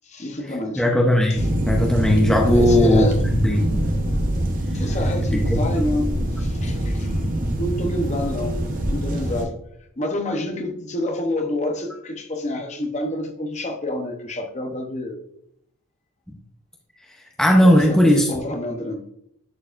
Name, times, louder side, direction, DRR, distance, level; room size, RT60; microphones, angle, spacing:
voice 1, 0.0-0.8 2.5-3.2 4.7-7.2 7.6-9.5 10.0-15.2 17.6-19.1, left 1 dB, 30° left, 0.8 m, -28 dB
voice 2, 0.8-3.8 5.3-5.6 17.4-18.3, equal, 5° left, 0.6 m, -17 dB
sound 1, 1.4-9.5, right 1 dB, 35° right, 0.9 m, -23 dB
11.0 x 4.7 x 2.5 m
head